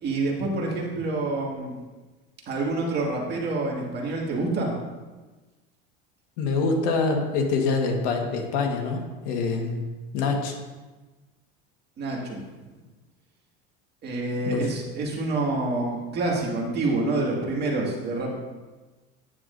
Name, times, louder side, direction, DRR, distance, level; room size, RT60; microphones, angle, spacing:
voice 1, 0.0-1.8 2.5-4.8 12.0-12.4 14.0-18.3, right 2 dB, 35° right, -2 dB, 2.0 m, -27 dB
voice 2, 6.4-10.5 14.4-14.6, left 4 dB, 70° left, 3 dB, 1.6 m, -25 dB
9.7 x 9.1 x 2.7 m, 1.2 s
supercardioid pair, 130°, 29 cm